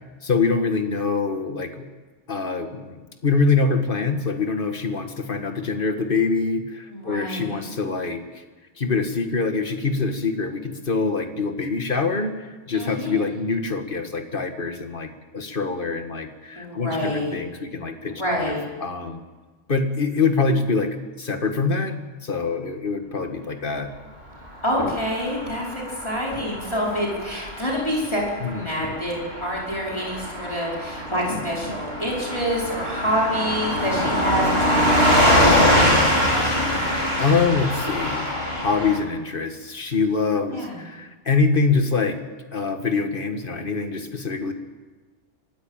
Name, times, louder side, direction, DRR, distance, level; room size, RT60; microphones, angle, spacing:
voice 1, 0.2-1.9 2.3-8.4 8.8-15.1 15.3-18.6 18.8-19.2 19.7-23.9 28.4-28.7 31.7-31.8 37.2-42.2 42.5-44.5, left 4 dB, 50° left, 6 dB, 1.9 m, -24 dB
voice 2, 6.9-7.7 12.7-13.2 16.5-17.4 18.1-18.7 24.6-36.7 40.5-40.8, equal, 25° left, -4 dB, 5.1 m, -27 dB
Car passing by / Truck, 24.6-39.0, equal, 55° right, 4.2 m, -23 dB
23.5 x 14.0 x 9.0 m, 1.3 s
omnidirectional pair, 1.2 m